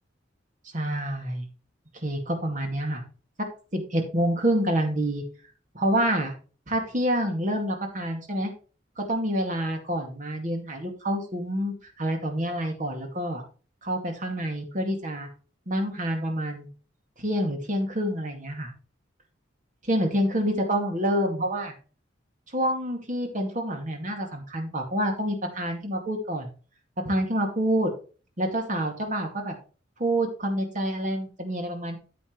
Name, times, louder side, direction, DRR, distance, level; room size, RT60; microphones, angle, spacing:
voice 1, 0.7-1.5 2.0-3.0 3.7-5.2 5.7-6.3 6.7-8.5 9.0-13.4 13.8-15.3 15.7-16.7 17.2-18.7 19.8-21.7 22.5-26.5 27.0-27.9 28.4-29.5 30.0-32.0, equal, 40° right, 3 dB, 2.4 m, -27 dB
9.2 x 8.5 x 3.2 m, 0.36 s
head